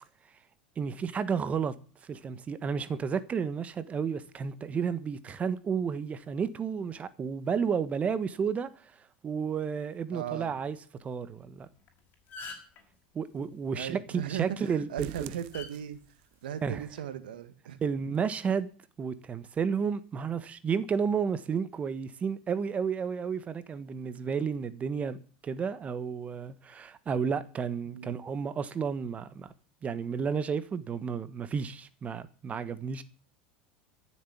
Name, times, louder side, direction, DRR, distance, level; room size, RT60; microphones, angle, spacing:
voice 1, 0.8-1.7 2.0-11.7 13.1-15.3 16.6-16.8 17.8-18.7 19.0-25.2 25.4-29.5 29.8-33.0, right 6 dB, 30° right, 1.3 m, -32 dB
voice 2, 10.1-10.5 13.7-16.0 16.4-17.8 27.9-28.2, right 9 dB, 85° right, 1.9 m, -38 dB
sound 1, 11.8-11.9 12.1-12.8 14.4-14.7 15.5-15.7 16.7-17.0, left 3 dB, 40° left, 5.6 m, -42 dB
sound 2, 15.0-16.5 16.8-16.9 17.3-17.4 17.8-17.9, right 17 dB, 65° right, 0.8 m, -47 dB
13.5 x 7.6 x 8.5 m
hypercardioid pair, 105°, 5 cm